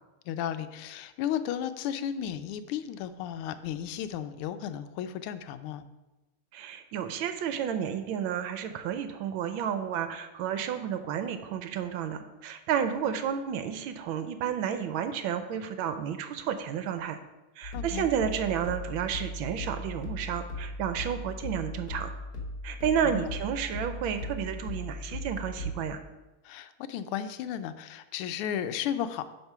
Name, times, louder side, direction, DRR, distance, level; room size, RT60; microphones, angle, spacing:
voice 1, 0.3-5.8 17.7-18.1 23.0-23.2 26.4-29.3, left 9 dB, 90° left, 11 dB, 1.5 m, -34 dB
voice 2, 6.5-17.2 17.6-22.1 22.6-26.0, right 8 dB, 75° right, 9 dB, 1.3 m, -31 dB
sound 1, 17.6-25.8, left 2 dB, 45° left, 2.0 m, -38 dB
10.5 x 3.7 x 5.5 m, 1.1 s
omnidirectional pair, 2.4 m